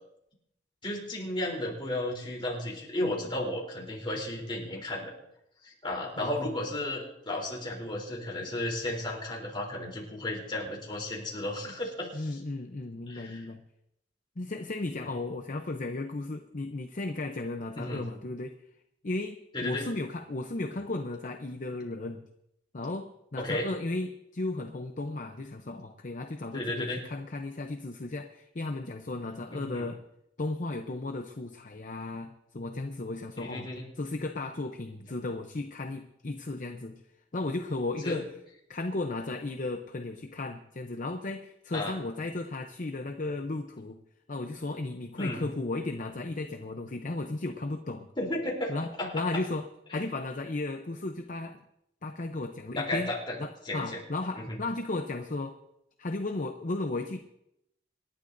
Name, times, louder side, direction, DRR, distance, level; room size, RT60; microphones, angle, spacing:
voice 1, 0.8-5.1 5.6-12.3 13.1-13.5 15.0-15.1 17.8-18.0 19.5-19.8 23.4-23.7 26.5-27.0 29.5-29.8 33.4-33.8 38.0-38.2 41.7-41.9 45.2-45.4 48.2-48.7 49.0-49.2 52.8-53.4 53.7-53.8 54.4-54.6, left 1 dB, 25° left, -2 dB, 3.6 m, -34 dB
voice 2, 12.1-13.6 14.4-18.5 19.0-22.2 22.7-30.0 30.4-33.7 34.0-37.0 37.3-38.3 38.7-44.0 44.3-48.1 48.7-51.6 52.0-53.1 53.4-55.6 56.0-57.2, left 2 dB, 45° left, 6 dB, 0.7 m, -35 dB
27.0 x 11.5 x 2.7 m, 0.80 s
head